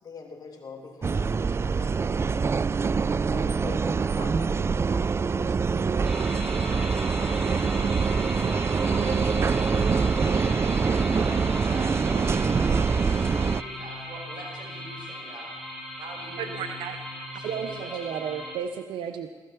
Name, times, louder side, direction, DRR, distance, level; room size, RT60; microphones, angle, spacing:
voice 1, 0.0-2.4 3.3-5.9, left 4 dB, 50° left, 1 dB, 2.9 m, -44 dB
sound 1, 1.0-13.6, right 5 dB, 30° right, 0.3 m, -24 dB
sound 2, 6.0-18.6, left 1 dB, ahead, 3.8 m, -38 dB
voice 2, 8.8-9.5 10.2-10.5 11.1-12.4 12.9-16.6 17.3-17.9, right 3 dB, 65° right, 0 dB, 5.6 m, -42 dB
voice 3, 16.4-17.0 17.4-19.3, right 8 dB, 80° right, 8 dB, 0.6 m, -33 dB
16.0 x 15.5 x 4.6 m, 1.5 s
supercardioid pair, 60°, 8 cm